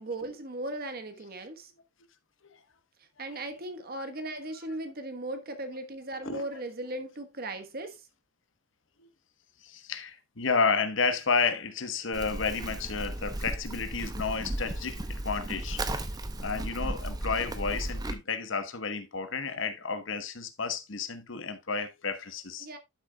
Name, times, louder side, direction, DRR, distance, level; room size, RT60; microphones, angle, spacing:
voice 1, 0.0-1.7 3.0-8.1 22.6-22.8, right 1 dB, 45° right, 1.2 m, -37 dB
voice 2, 9.6-16.1 16.4-22.7, left 5 dB, 60° left, 1.0 m, -31 dB
Livestock farm animals working animals, 12.1-18.2, right 1 dB, 20° right, 0.7 m, -35 dB
11.5 x 6.6 x 2.3 m
head